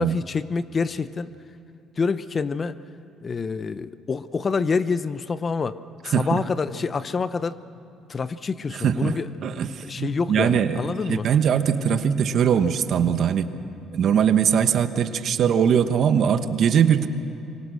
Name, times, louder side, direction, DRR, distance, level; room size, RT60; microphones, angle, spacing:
voice 1, 0.0-1.3 2.0-2.8 3.2-5.8 6.0-7.6 8.1-9.3 9.8-11.3, left 5 dB, 35° left, 14 dB, 0.8 m, -27 dB
voice 2, 6.1-6.4 8.7-13.5 13.9-17.1, right 8 dB, 60° right, 10 dB, 1.2 m, -21 dB
25.0 x 24.0 x 6.5 m, 2.9 s
cardioid pair, 85°, 0 cm